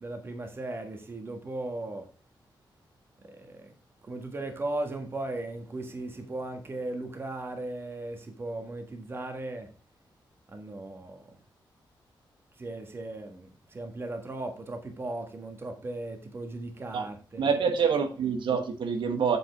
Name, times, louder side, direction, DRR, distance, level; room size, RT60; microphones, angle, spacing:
voice 1, 0.0-2.1 3.2-3.7 4.0-9.7 10.5-11.3 12.6-17.5, right 2 dB, 30° right, 5 dB, 1.5 m, -37 dB
voice 2, 17.4-19.4, right 6 dB, 85° right, 6 dB, 1.2 m, -26 dB
8.2 x 7.2 x 3.5 m, 0.36 s
wide cardioid pair, 175°, 8 cm